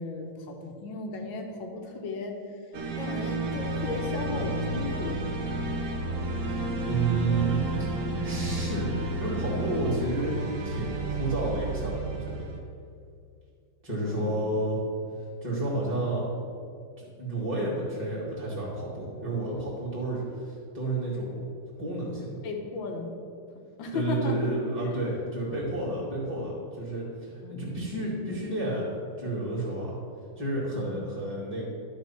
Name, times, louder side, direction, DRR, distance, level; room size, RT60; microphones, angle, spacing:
voice 1, 0.0-2.4 3.0-5.4 14.0-14.5 22.4-23.1 23.8-25.0 27.4-27.9 30.7-31.0, left 3 dB, 70° left, 3 dB, 1.6 m, -35 dB
sound 1, 2.7-12.6, right 2 dB, 50° right, 1.0 m, -31 dB
voice 2, 6.8-7.6 8.2-10.4 10.6-12.4 13.8-14.8 15.4-16.3 17.0-21.4 21.8-22.4 23.9-28.9 29.2-29.9 30.4-31.6, right 2 dB, 5° right, -8 dB, 2.1 m, -31 dB
11.5 x 3.8 x 5.8 m, 2.3 s
omnidirectional pair, 2.2 m